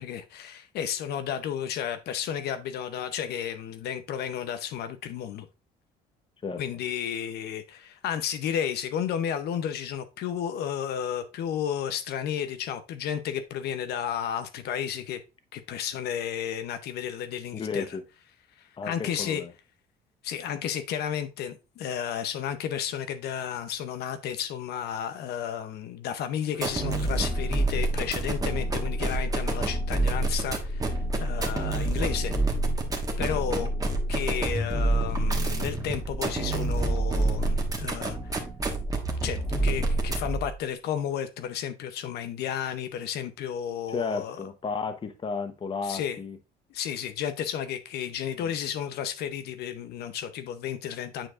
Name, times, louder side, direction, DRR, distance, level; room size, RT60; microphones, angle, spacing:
voice 1, 0.0-5.5 6.6-15.2 15.5-17.9 18.6-19.4 20.2-32.3 33.2-33.7 34.1-38.3 39.2-44.4 45.8-46.2 46.7-51.3, left 9 dB, 75° left, 0.6 m, -32 dB
voice 2, 17.5-18.0 18.8-19.5 33.6-33.7 43.9-46.4 48.4-48.5, left 5 dB, 30° left, 0.9 m, -33 dB
sound 1, 26.5-40.5, right 2 dB, 20° right, 1.3 m, -27 dB
8.8 x 4.6 x 2.4 m
cardioid pair, 110°, 17 cm